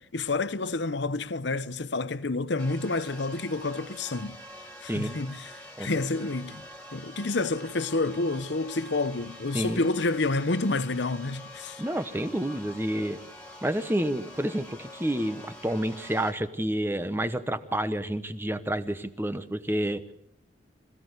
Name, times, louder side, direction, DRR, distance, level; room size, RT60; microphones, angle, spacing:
voice 1, 0.1-4.4 4.8-5.4 5.8-6.6 6.9-11.8, left 3 dB, 70° left, 0.9 m, -29 dB
sound 1, 2.6-16.3, left 1 dB, 5° left, 2.6 m, -46 dB
voice 2, 9.5-9.9 11.8-13.2 13.6-20.1, right 1 dB, 10° right, 1.1 m, -29 dB
25.5 x 16.0 x 8.2 m
head